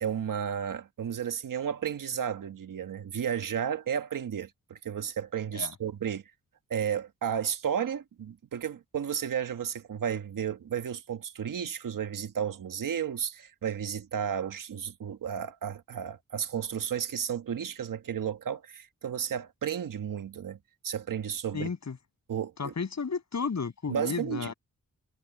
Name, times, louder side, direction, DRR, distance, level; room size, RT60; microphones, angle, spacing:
voice 1, 0.0-6.2 6.7-20.6 20.8-21.7 22.3-22.7 23.9-24.5, right 8 dB, 80° right, 1.5 m, -33 dB
voice 2, 21.5-22.0 22.6-24.5, left 5 dB, 55° left, 7.2 m, -33 dB
wide cardioid pair, 105°, 32 cm